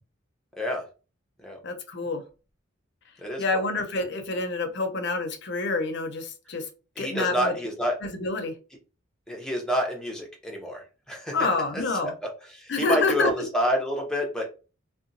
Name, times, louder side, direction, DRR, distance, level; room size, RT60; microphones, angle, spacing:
voice 1, 0.5-0.9 1.4-1.6 3.2-3.6 7.0-8.0 9.3-11.4 11.7-14.5, equal, 5° left, 0 dB, 0.7 m, -29 dB
voice 2, 1.6-2.2 3.4-6.7 7.0-7.5 8.1-8.5 11.3-12.1 12.7-13.3, left 3 dB, 55° left, 6 dB, 0.6 m, -27 dB
2.8 x 2.2 x 2.5 m, 0.33 s
head